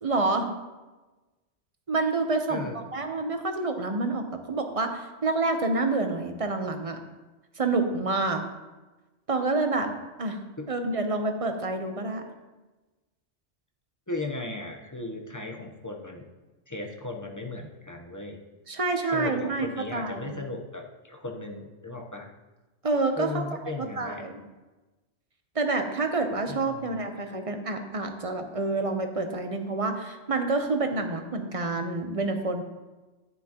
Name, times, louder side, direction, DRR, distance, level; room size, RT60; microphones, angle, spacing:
voice 1, 0.0-0.5 1.9-7.0 7.6-8.4 9.3-10.4 10.7-12.2 18.7-20.3 22.8-23.5 23.8-24.4 25.5-32.6, right 3 dB, 35° right, 5 dB, 0.8 m, -28 dB
voice 2, 2.5-2.9 10.6-10.7 14.1-16.2 16.7-18.4 19.1-22.3 23.2-24.2 26.5-27.0, left 2 dB, 20° left, 1 dB, 0.8 m, -36 dB
9.9 x 9.8 x 2.9 m, 1.2 s
omnidirectional pair, 1.2 m